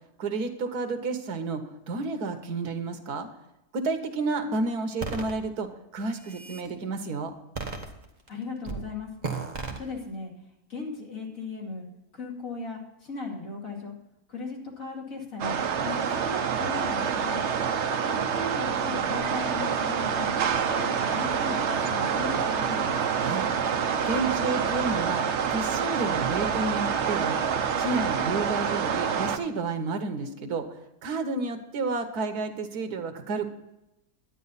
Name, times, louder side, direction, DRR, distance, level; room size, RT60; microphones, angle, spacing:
voice 1, 0.2-3.3 3.7-7.3 23.2-23.4 24.0-25.2 25.5-27.4 27.8-33.5, right 3 dB, 80° right, 7 dB, 1.6 m, -31 dB
sound 1, 5.0-5.3 6.0-6.7 7.6-8.3 8.6-8.9 9.2-9.8, right 4 dB, 30° right, 1.2 m, -34 dB
voice 2, 8.3-9.1 9.8-10.3 10.7-11.9 12.1-13.9 14.3-15.6 15.8-17.4 18.0-20.3 20.6-23.0, left 3 dB, 60° left, -2 dB, 3.0 m, -37 dB
sound 2, 15.4-29.4, right 7 dB, 55° right, 0.9 m, -27 dB
11.0 x 9.4 x 4.1 m, 0.89 s
omnidirectional pair, 1.6 m